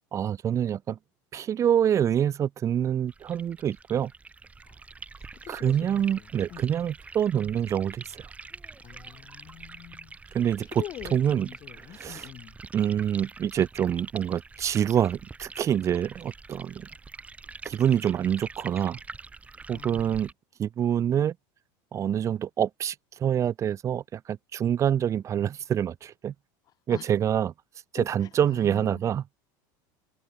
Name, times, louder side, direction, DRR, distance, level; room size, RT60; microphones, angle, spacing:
voice 1, 0.1-1.0 1.3-4.1 5.5-8.3 10.3-10.7 11.1-11.5 11.9-12.3 12.7-16.9 17.6-19.0 19.7-20.3 20.6-21.3 21.9-22.9 23.2-26.3 26.9-27.5 27.9-29.2, right 9 dB, 30° right, 1.3 m, -26 dB
sound 1, 3.1-20.3, right 4 dB, 15° right, 3.4 m, -45 dB
voice 2, 5.2-6.7 8.8-10.2 10.8-12.6 19.7-20.2 26.9-27.1 28.0-29.0, left 12 dB, 35° left, 2.0 m, -44 dB
supercardioid pair, 140°, 10 cm